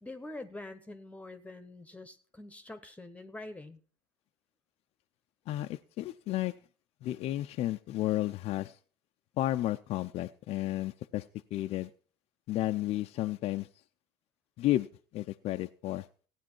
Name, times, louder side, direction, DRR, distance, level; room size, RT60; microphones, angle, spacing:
voice 1, 0.0-3.8, left 2 dB, 10° left, 10 dB, 1.1 m, -45 dB
voice 2, 5.5-6.5 7.0-8.8 9.4-11.3 11.5-11.9 12.5-13.7 14.6-14.9 15.1-16.1, left 15 dB, 55° left, 7 dB, 0.6 m, -32 dB
15.5 x 9.3 x 4.5 m, 0.43 s
supercardioid pair, 85°, 12 cm